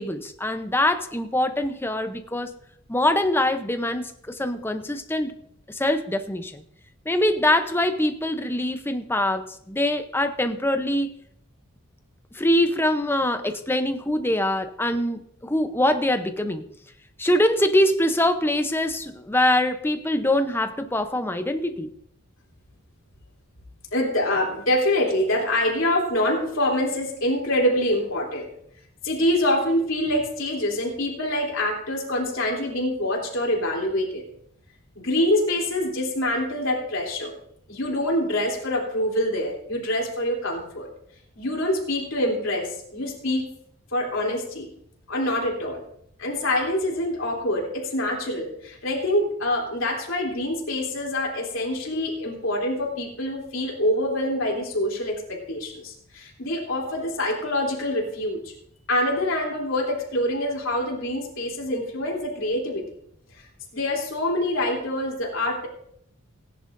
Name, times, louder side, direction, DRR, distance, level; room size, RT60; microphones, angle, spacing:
voice 1, 0.0-2.5 2.9-5.3 5.7-6.6 7.1-11.2 12.3-16.7 17.2-21.9, left 1 dB, 10° left, 8 dB, 0.7 m, -23 dB
voice 2, 23.9-28.5 29.0-34.2 34.9-37.3 37.7-40.9 41.4-43.5 43.9-44.7 45.1-45.8 46.2-58.5 58.9-62.8 63.3-63.4 63.7-65.7, left 1 dB, 65° left, -2 dB, 3.2 m, -25 dB
18.0 x 10.5 x 2.6 m, 0.70 s
head